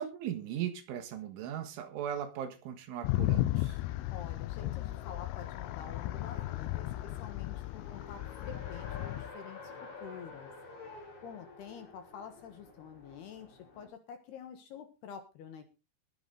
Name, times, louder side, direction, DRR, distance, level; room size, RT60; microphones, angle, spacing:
voice 1, 0.0-3.8, right 10 dB, 75° right, 8 dB, 3.8 m, -38 dB
sound 1, 3.0-9.3, left 16 dB, 90° left, 2.4 m, -35 dB
Race car auto racing, 3.8-13.9, left 3 dB, 45° left, 3.4 m, -50 dB
voice 2, 4.1-9.6 10.0-10.5 11.2-15.7, left 7 dB, 65° left, 7 dB, 2.9 m, -48 dB
20.5 x 8.0 x 3.9 m, 0.30 s
omnidirectional pair, 5.8 m